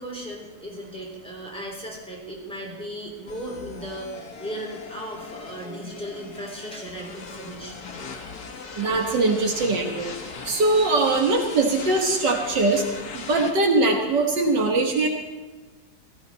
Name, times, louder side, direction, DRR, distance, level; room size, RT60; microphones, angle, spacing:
voice 1, 0.0-7.8, right 1 dB, 5° left, -2 dB, 3.2 m, -36 dB
sound 1, 3.3-13.5, left 4 dB, 60° left, 1.8 m, -39 dB
voice 2, 8.8-10.1 10.5-12.8 13.1-15.1, right 3 dB, 70° right, 2 dB, 2.1 m, -21 dB
17.0 x 14.5 x 4.1 m, 1.2 s
omnidirectional pair, 2.0 m